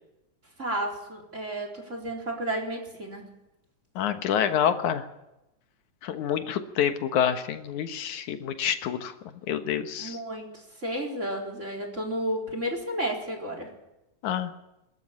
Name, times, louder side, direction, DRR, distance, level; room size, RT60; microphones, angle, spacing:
voice 1, 0.6-3.3 10.0-13.7, right 1 dB, 25° right, 3 dB, 4.3 m, -32 dB
voice 2, 4.0-5.0 6.0-9.1 9.5-10.2 14.2-14.5, left 9 dB, 85° left, 8 dB, 2.7 m, -27 dB
24.5 x 13.5 x 8.7 m, 0.92 s
omnidirectional pair, 3.3 m